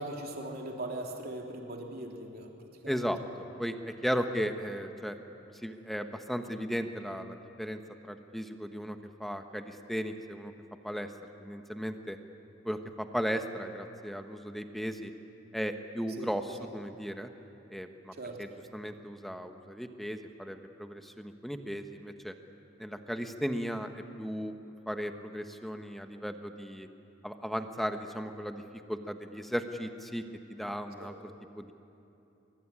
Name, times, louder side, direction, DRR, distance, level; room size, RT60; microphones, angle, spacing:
voice 1, 0.0-2.5 2.8-3.0 16.2-16.3 18.2-18.4 31.0-31.1, right 1 dB, 50° right, 1 dB, 3.4 m, -39 dB
voice 2, 2.9-5.2 5.6-10.5 10.8-11.1 11.4-12.2 12.6-15.1 15.5-17.3 17.7-22.3 22.8-26.9 27.2-28.6 28.9-30.2 30.5-31.1 31.6-31.7, equal, ahead, 6 dB, 1.2 m, -36 dB
23.5 x 23.0 x 9.9 m, 2.9 s
head